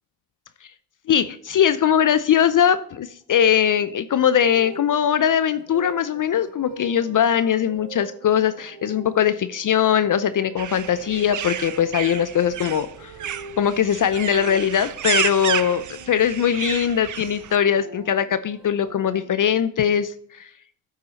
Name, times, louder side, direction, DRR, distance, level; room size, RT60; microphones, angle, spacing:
voice 1, 1.1-13.1 13.6-20.5, left 9 dB, 40° left, 13 dB, 0.6 m, -21 dB
sound 1, 4.2-16.1 17.3-19.5, right 2 dB, 75° right, 2.2 m, -43 dB
sound 2, 10.6-17.6, right 10 dB, 40° right, 0.6 m, -30 dB
13.0 x 4.7 x 4.1 m, 0.65 s
hypercardioid pair, 50°, 48 cm